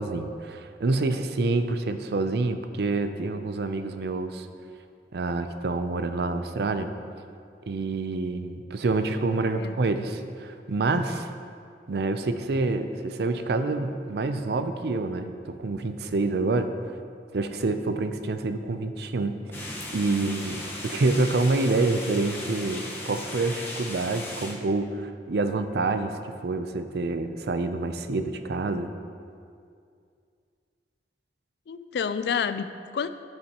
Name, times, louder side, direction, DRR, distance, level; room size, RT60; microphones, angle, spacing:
voice 1, 0.0-4.5 5.1-6.9 7.7-11.3 11.9-16.7 17.3-28.9, right 3 dB, 60° right, 9 dB, 0.5 m, -27 dB
sound 1, 19.5-24.5, left 1 dB, 15° left, 1.1 m, -37 dB
voice 2, 31.7-33.1, left 6 dB, 65° left, 12 dB, 0.3 m, -29 dB
11.5 x 6.9 x 2.9 m, 2.3 s
head